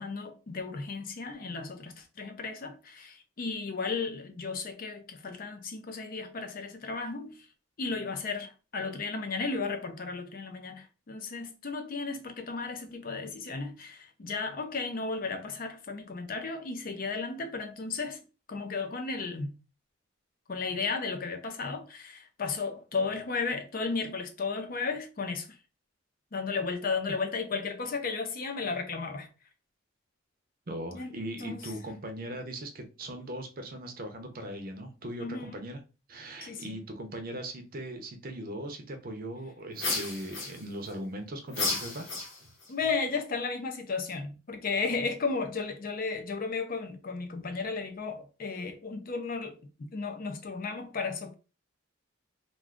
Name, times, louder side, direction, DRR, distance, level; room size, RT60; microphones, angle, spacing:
voice 1, 0.0-7.4 7.8-18.2 18.5-19.5 20.5-25.5 26.3-29.3 30.9-31.1 31.4-31.6 35.2-35.6 36.4-36.8 42.7-49.6 49.9-51.3, left 4 dB, 45° left, 0.5 m, -34 dB
voice 2, 30.7-35.8 36.1-42.1, right 1 dB, 45° right, 0.6 m, -39 dB
sound 1, 39.8-40.9 41.5-42.7, left 3 dB, 70° left, 1.0 m, -33 dB
2.4 x 2.4 x 3.5 m
head